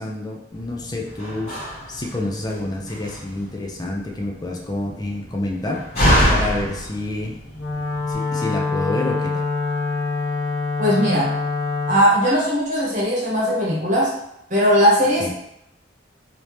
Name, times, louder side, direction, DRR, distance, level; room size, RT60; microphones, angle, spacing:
voice 1, 0.0-5.8 6.3-7.4 8.1-9.5 15.2-15.3, left 2 dB, 20° left, 0 dB, 0.5 m, -28 dB
Slam, 0.5-8.1, equal, 35° left, 1.4 m, -26 dB
Wind instrument woodwind instrument, 7.5-12.0, left 3 dB, 65° left, 0.8 m, -25 dB
voice 2, 10.8-11.3 11.9-14.1 14.5-15.3, equal, 45° right, -5 dB, 1.1 m, -18 dB
3.3 x 2.7 x 3.1 m, 0.80 s
head